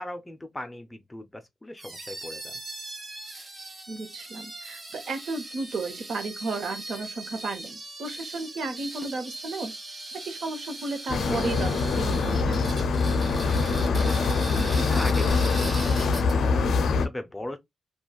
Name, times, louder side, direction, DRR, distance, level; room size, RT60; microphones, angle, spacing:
voice 1, 0.0-2.6 13.5-17.6, left 1 dB, 15° left, 0.5 m, -39 dB
sound 1, 1.8-16.6, right 2 dB, 25° right, 1.0 m, -40 dB
voice 2, 3.9-9.7 10.3-12.7, right 3 dB, 60° right, 0.9 m, -33 dB
sound 2, 11.1-17.1, left 4 dB, 70° left, 0.4 m, -24 dB
3.2 x 2.2 x 2.3 m
cardioid pair, 110°, 0 cm